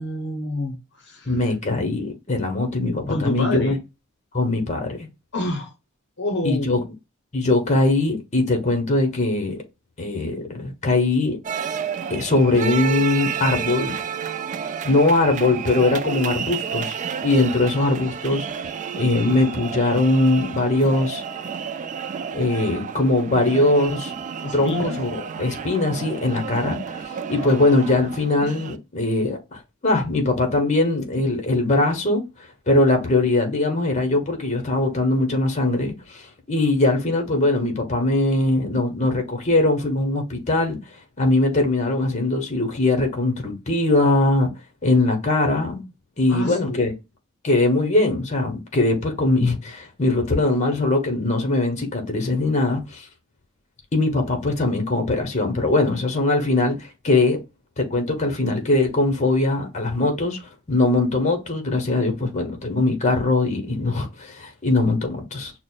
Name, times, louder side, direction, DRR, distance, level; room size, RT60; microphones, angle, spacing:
voice 1, 0.0-1.4 3.1-3.8 5.3-5.7 6.2-6.8 24.4-25.0 27.4-27.7 46.3-46.9, left 2 dB, 55° left, 0.7 m, -28 dB
voice 2, 1.2-3.8 4.3-5.1 6.4-6.8 7.3-9.6 10.0-11.4 12.1-14.0 14.8-17.0 17.2-18.7 18.9-21.2 22.3-24.1 24.5-27.0 27.3-32.2 32.7-40.8 41.2-44.5 44.8-45.8 46.2-46.9 47.4-53.1 53.9-57.4 57.8-60.4 60.7-65.5, left 2 dB, 35° left, 1.0 m, -21 dB
sound 1, 11.4-28.8, right 7 dB, 35° right, 0.3 m, -31 dB
6.2 x 2.1 x 2.3 m
head